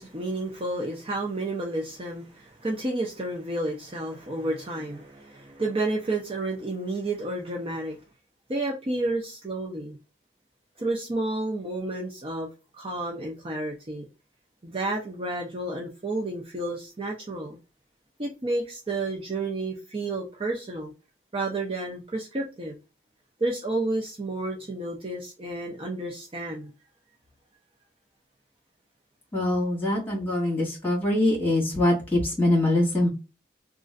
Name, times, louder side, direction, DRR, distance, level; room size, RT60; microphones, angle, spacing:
voice 1, 0.0-8.0 8.5-10.0 10.8-12.5 12.8-14.0 14.6-17.6 18.2-20.9 21.3-22.8 23.4-26.7, right 2 dB, 30° right, 0.6 m, -31 dB
voice 2, 29.3-33.1, left 1 dB, 10° left, 1.8 m, -23 dB
3.0 x 2.5 x 2.5 m
head